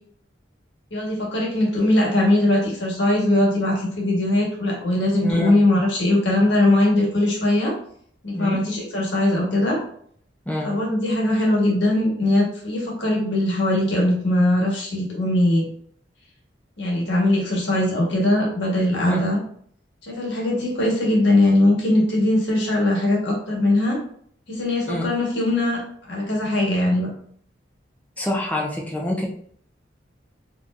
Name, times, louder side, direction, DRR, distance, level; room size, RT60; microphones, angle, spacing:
voice 1, 0.9-7.7 8.2-9.8 10.6-15.7 16.8-19.4 20.0-24.0 24.5-27.1, left 1 dB, 75° left, -2 dB, 1.3 m, -20 dB
voice 2, 5.2-5.6 8.3-8.6 10.5-10.7 19.1-19.2 24.9-25.1 28.2-29.3, left 1 dB, 10° left, -2 dB, 0.7 m, -26 dB
4.1 x 2.9 x 2.5 m, 0.62 s
head